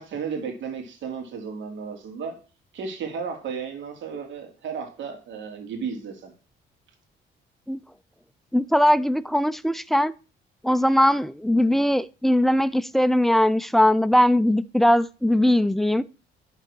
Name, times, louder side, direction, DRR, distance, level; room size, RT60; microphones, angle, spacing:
voice 1, 0.0-2.4 2.7-6.3, right 6 dB, 75° right, 2.6 m, -34 dB
voice 2, 8.5-10.1 10.6-16.0, left 1 dB, ahead, 0.5 m, -20 dB
11.5 x 4.0 x 6.1 m
cardioid pair, 90°, 20 cm